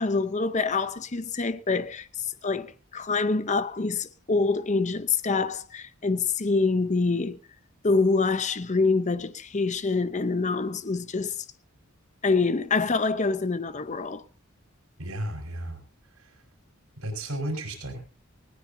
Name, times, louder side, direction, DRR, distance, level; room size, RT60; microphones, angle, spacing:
voice 1, 0.0-7.4 7.8-11.4 12.2-14.2, left 4 dB, 35° left, 0.7 m, -26 dB
voice 2, 15.0-15.8 16.1-16.3 17.0-18.0, right 1 dB, 85° right, 5.0 m, -34 dB
19.5 x 18.0 x 2.7 m
head